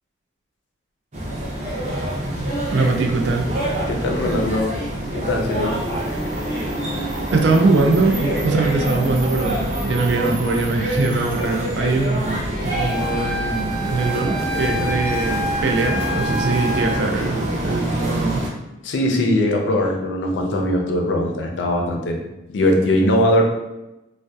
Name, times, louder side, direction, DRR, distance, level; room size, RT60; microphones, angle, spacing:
sound 1, 1.1-18.5, right 1 dB, 40° right, 0.5 m, -26 dB
voice 1, 2.7-3.5 6.8-18.4, right 3 dB, 85° right, 3 dB, 0.4 m, -22 dB
voice 2, 3.9-4.7 5.1-5.8 18.8-22.2 22.5-23.4, left 1 dB, 90° left, 2 dB, 0.4 m, -20 dB
Wind instrument woodwind instrument, 12.7-17.0, left 1 dB, ahead, 0.6 m, -28 dB
2.6 x 2.1 x 2.2 m, 0.96 s
head